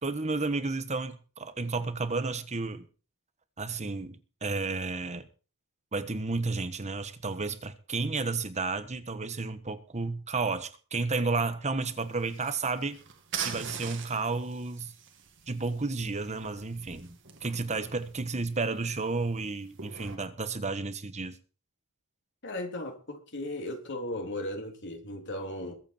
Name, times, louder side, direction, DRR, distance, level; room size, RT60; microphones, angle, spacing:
voice 1, 0.0-2.9 3.6-5.3 5.9-13.0 13.4-14.9 15.5-21.4, right 3 dB, 30° right, 1.3 m, -32 dB
sound 1, 11.9-20.2, right 7 dB, 60° right, 2.3 m, -43 dB
voice 2, 22.4-25.7, left 1 dB, 55° left, 3.3 m, -36 dB
22.5 x 8.3 x 4.4 m
head